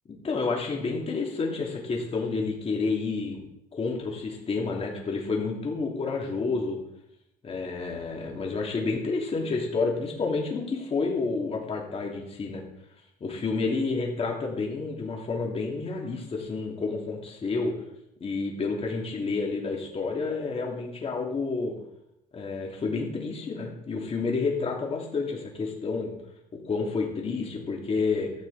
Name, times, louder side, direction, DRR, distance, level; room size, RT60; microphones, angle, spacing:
voice 1, 0.2-3.4 3.7-6.8 7.4-12.6 13.2-17.7 18.2-21.7 22.3-26.1 26.6-28.3, left 4 dB, 35° left, -1 dB, 3.1 m, -29 dB
14.0 x 8.9 x 4.3 m, 0.82 s
cardioid pair, 110°, 17 cm